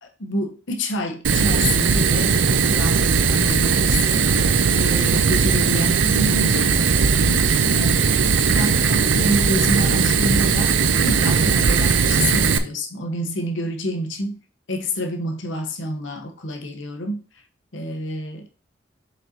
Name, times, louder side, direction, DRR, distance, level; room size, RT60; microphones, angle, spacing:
voice 1, 0.0-4.5 4.8-6.8 7.2-8.1 8.4-14.4 14.7-17.2 17.7-18.5, equal, 80° left, 1.1 m, -28 dB
Fire, 1.2-12.6, right 5 dB, 80° right, 0.6 m, -18 dB
6.6 x 5.4 x 2.9 m
head